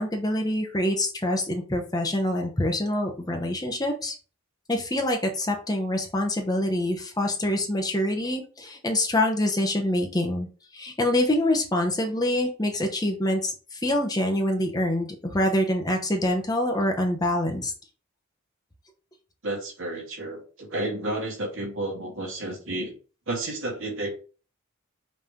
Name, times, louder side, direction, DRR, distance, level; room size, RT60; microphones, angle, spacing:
voice 1, 0.0-4.1 4.7-17.7, left 1 dB, 15° left, 2 dB, 0.9 m, -25 dB
voice 2, 19.4-22.9 23.3-24.1, right 2 dB, 65° right, -2 dB, 2.6 m, -31 dB
5.7 x 3.4 x 5.1 m, 0.37 s
head